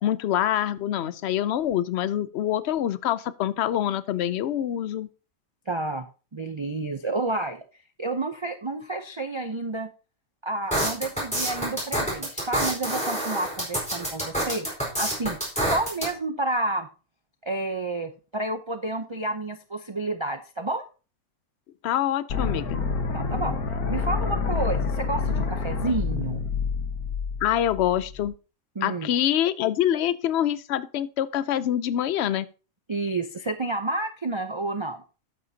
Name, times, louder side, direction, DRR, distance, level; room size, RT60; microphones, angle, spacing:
voice 1, 0.0-5.1 21.8-22.8 27.4-28.3 28.8-32.5, left 11 dB, 60° left, 0.7 m, -25 dB
voice 2, 5.7-6.1 6.3-7.6 8.0-9.9 10.4-14.7 15.0-16.9 17.4-20.8 23.1-23.6 23.9-26.4 28.8-29.1 32.9-35.0, right 2 dB, 50° right, 0.3 m, -30 dB
sound 1, 10.7-16.1, right 1 dB, 5° left, 4.1 m, -27 dB
sound 2, 22.3-28.3, left 5 dB, 80° left, 1.8 m, -28 dB
12.0 x 8.6 x 2.8 m
omnidirectional pair, 1.5 m